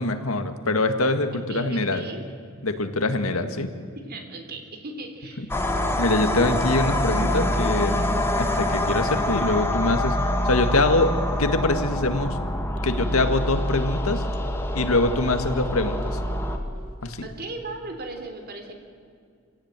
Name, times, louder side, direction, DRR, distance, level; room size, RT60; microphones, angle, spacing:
voice 1, 0.0-2.0 2.6-3.7 5.4-5.5 6.0-11.1 11.4-12.4 12.8-14.2 14.8-16.2 17.0-17.3, left 2 dB, 80° left, 8 dB, 1.9 m, -24 dB
voice 2, 1.5-2.2 4.0-5.5 17.2-18.7, right 2 dB, 50° right, 4 dB, 3.5 m, -37 dB
sound 1, 5.5-16.6, left 1 dB, 10° left, 2.0 m, -25 dB
26.5 x 17.0 x 9.1 m, 2.3 s
head